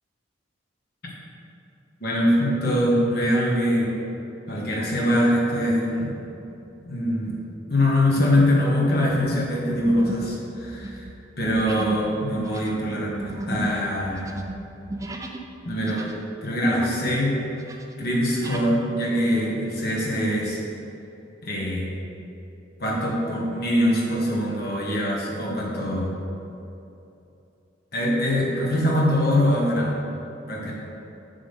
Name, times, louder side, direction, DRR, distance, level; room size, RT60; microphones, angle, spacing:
voice 1, 2.0-3.9 4.5-6.1 6.8-7.4 7.7-11.0 11.4-14.2 15.6-16.1 16.4-17.4 18.0-20.6 21.4-21.9 22.8-26.1 27.9-29.9 30.5-30.7, equal, 55° left, -4 dB, 1.5 m, -23 dB
sound 1, 6.5-6.8 7.3-7.5 8.1-8.6 8.9-15.5 15.8-17.2 17.5-18.7, right 2 dB, 15° right, 0.4 m, -36 dB
7.7 x 6.2 x 3.6 m, 2.8 s
head